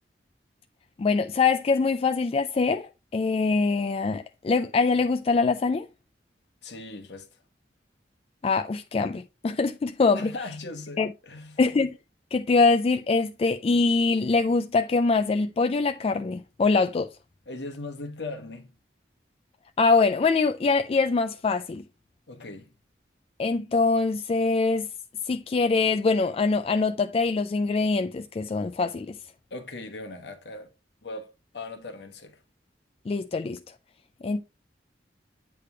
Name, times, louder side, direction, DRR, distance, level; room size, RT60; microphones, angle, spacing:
voice 1, 1.0-5.9 8.4-10.3 11.0-11.1 11.6-11.9 12.3-17.1 19.8-21.8 23.4-24.9 25.3-29.2 33.1-33.6 34.2-34.4, left 4 dB, 35° left, 0.3 m, -23 dB
voice 2, 6.6-7.3 10.1-11.6 17.5-18.7 22.3-22.7 29.5-30.7 31.0-32.4, left 2 dB, 70° left, 1.2 m, -39 dB
8.4 x 3.4 x 4.5 m
head